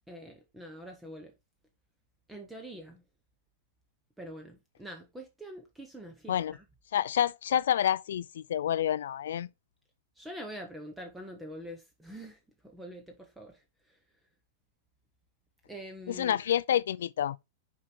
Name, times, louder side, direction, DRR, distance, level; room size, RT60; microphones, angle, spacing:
voice 1, 0.0-1.3 2.3-3.0 4.2-6.6 10.2-13.6 15.7-16.4, equal, 5° right, 0.8 m, -45 dB
voice 2, 6.9-9.5 16.1-17.4, left 10 dB, 90° left, 0.4 m, -28 dB
6.2 x 4.7 x 4.3 m
supercardioid pair, 170°, 0 cm